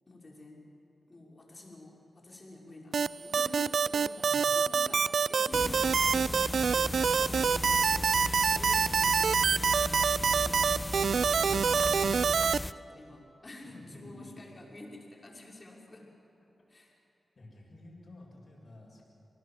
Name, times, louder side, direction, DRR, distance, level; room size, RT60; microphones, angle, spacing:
voice 1, 0.1-0.6 1.1-10.9 11.4-16.1 16.7-17.0, left 1 dB, 40° left, -1 dB, 5.8 m, -49 dB
sound 1, 2.9-12.6, right 6 dB, 75° right, 0.4 m, -26 dB
voice 2, 4.2-4.5 13.6-14.4 17.4-19.0, left 2 dB, 55° left, -2 dB, 7.4 m, -51 dB
sound 2, 5.5-12.7, left 2 dB, 25° left, 0.5 m, -37 dB
27.5 x 19.0 x 7.9 m, 2.9 s
cardioid pair, 55°, 0 cm